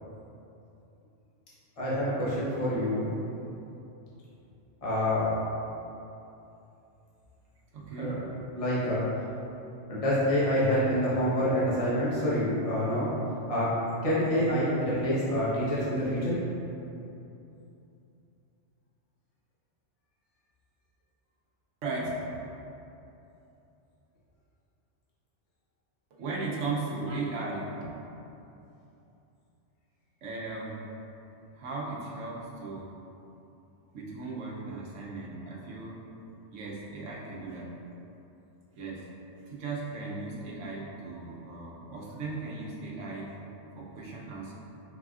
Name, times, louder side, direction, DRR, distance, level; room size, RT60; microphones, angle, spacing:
voice 1, 1.8-3.1 4.8-5.4 8.0-8.2 8.5-9.1 9.9-13.1 13.5-13.7 14.0-16.4, equal, 30° left, -9 dB, 0.9 m, -27 dB
voice 2, 7.7-8.2 21.8-22.4 26.2-27.9 30.2-30.9 31.5-32.9 33.9-36.0 36.5-37.7 38.8-39.0 39.5-43.4 43.7-44.5, right 3 dB, 80° right, -3 dB, 1.1 m, -36 dB
4.0 x 3.8 x 2.4 m, 2.9 s
omnidirectional pair, 1.3 m